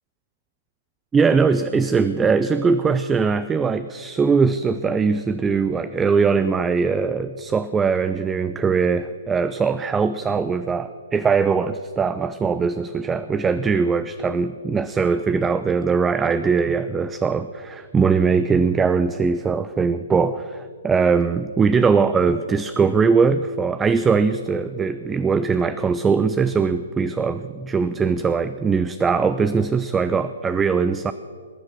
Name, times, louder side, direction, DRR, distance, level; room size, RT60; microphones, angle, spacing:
voice 1, 1.1-31.1, right 5 dB, 10° right, 13 dB, 0.4 m, -21 dB
21.0 x 9.8 x 6.1 m, 2.1 s
figure-of-eight pair, 125°, 0 cm